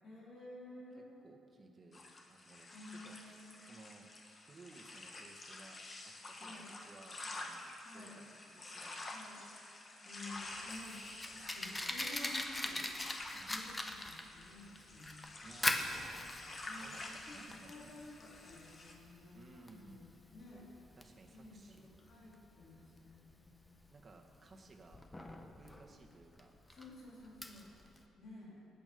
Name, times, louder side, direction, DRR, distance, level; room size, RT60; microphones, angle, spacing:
voice 1, 0.0-1.2 2.7-3.7 6.4-6.7 7.8-8.3 9.1-9.4 10.0-12.8 13.4-15.4 16.7-20.7 21.3-23.8 26.7-27.8 28.2-28.7, left 2 dB, 55° left, -5 dB, 3.8 m, -53 dB
voice 2, 1.2-2.0 2.3-4.1 4.4-9.2 13.3-13.7 15.4-16.4 16.8-18.0 19.3-20.2 21.0-21.9 23.9-25.0 25.3-26.5, right 3 dB, 35° right, 2 dB, 1.6 m, -59 dB
sound 1, 1.9-18.9, left 2 dB, 35° left, 1.6 m, -50 dB
Fire, 10.3-28.0, left 1 dB, 15° left, 1.0 m, -42 dB
19.0 x 8.7 x 5.3 m, 2.8 s
cardioid pair, 90°, 0 cm